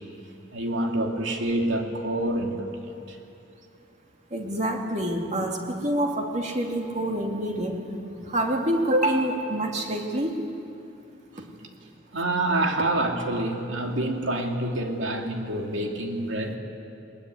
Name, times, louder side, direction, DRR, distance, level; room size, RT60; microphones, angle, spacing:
voice 1, 0.5-3.2 11.3-11.5 12.1-16.6, right 1 dB, 80° right, 2 dB, 2.7 m, -27 dB
voice 2, 4.3-7.8 8.3-10.3, right 1 dB, 35° right, 1 dB, 2.5 m, -26 dB
21.0 x 21.0 x 9.7 m, 2.7 s
head